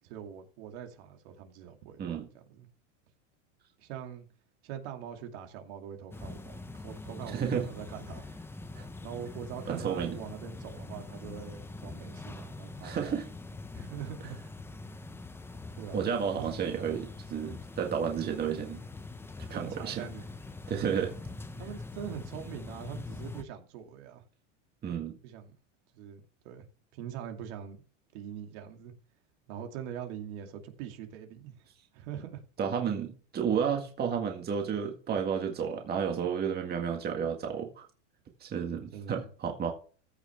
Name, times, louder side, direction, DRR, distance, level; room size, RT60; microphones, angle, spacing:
voice 1, 0.0-2.7 3.8-4.3 4.6-8.3 9.0-13.2 13.7-14.4 15.7-16.0 16.3-16.4 19.5-20.2 21.5-24.2 25.2-25.5 26.0-26.7 26.9-27.8 28.1-28.9 29.5-32.4 38.9-39.3, right 9 dB, 60° right, 2.5 m, -43 dB
voice 2, 2.0-2.3 7.3-7.7 8.7-8.9 9.7-10.2 12.8-13.3 15.9-18.8 19.5-20.1 20.7-21.2 24.8-25.2 32.6-37.8 38.4-39.7, right 7 dB, 25° right, 1.8 m, -32 dB
sound 1, 6.1-23.4, left 3 dB, 5° left, 0.7 m, -44 dB
15.0 x 6.3 x 3.5 m
supercardioid pair, 135°, 37 cm